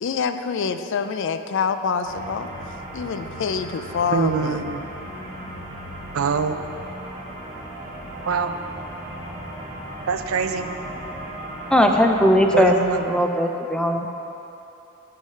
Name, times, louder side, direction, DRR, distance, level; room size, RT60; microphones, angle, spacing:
voice 1, 0.0-2.5 2.9-4.6, left 6 dB, 65° left, 9 dB, 0.4 m, -26 dB
sound 1, 2.0-13.0, right 1 dB, 40° right, 1.6 m, -36 dB
voice 2, 4.1-4.8 6.1-6.6 8.3-8.5 10.1-10.7 12.5-13.2, right 5 dB, 90° right, 8 dB, 0.5 m, -24 dB
voice 3, 11.7-12.7 13.1-14.1, equal, 5° left, 3 dB, 0.5 m, -18 dB
6.6 x 6.3 x 5.5 m, 3.0 s
head